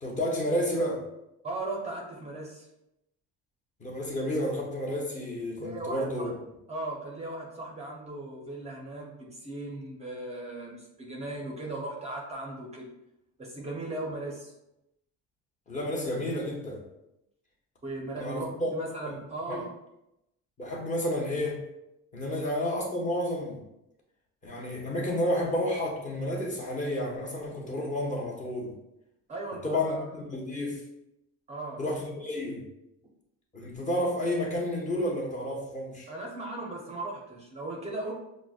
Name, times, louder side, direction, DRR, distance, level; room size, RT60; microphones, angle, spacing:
voice 1, 0.0-1.0 3.8-6.3 15.7-16.8 18.2-18.7 19.5-19.6 20.6-21.6 22.1-23.6 24.4-28.7 29.6-30.8 31.8-32.6 33.5-36.1, left 1 dB, 25° left, -2 dB, 0.6 m, -31 dB
voice 2, 1.4-2.7 5.6-6.3 6.7-12.9 13.4-14.5 17.8-19.7 22.2-22.4 29.3-30.1 31.5-31.8 36.1-38.1, right 2 dB, 20° right, -1 dB, 0.5 m, -37 dB
6.1 x 2.0 x 2.3 m, 0.86 s
cardioid pair, 170°, 32 cm